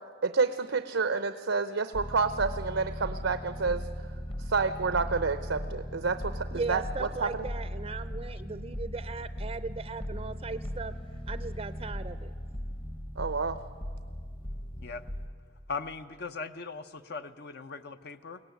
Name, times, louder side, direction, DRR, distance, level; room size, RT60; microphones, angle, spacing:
voice 1, 0.2-3.8 4.5-7.4 13.2-13.6, right 4 dB, 90° right, 11 dB, 0.7 m, -29 dB
sound 1, 1.9-15.3, equal, 30° left, 1.0 m, -38 dB
voice 2, 6.5-10.9 11.3-12.3, right 4 dB, 30° right, 12 dB, 0.5 m, -38 dB
voice 3, 15.7-18.4, left 4 dB, 60° left, 9 dB, 0.6 m, -39 dB
22.5 x 18.0 x 9.1 m, 2.1 s
head